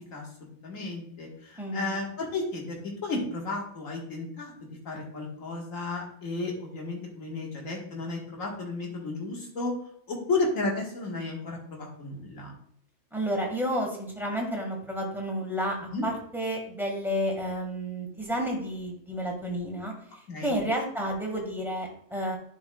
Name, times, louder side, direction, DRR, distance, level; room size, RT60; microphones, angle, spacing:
voice 1, 0.6-2.8 3.0-9.7 10.1-12.5 15.9-16.1 20.3-20.6, left 3 dB, 80° left, -1 dB, 2.0 m, -33 dB
voice 2, 1.6-2.0 13.1-15.8 16.0-22.4, equal, ahead, -1 dB, 1.7 m, -31 dB
10.5 x 5.4 x 2.3 m, 0.66 s
omnidirectional pair, 1.4 m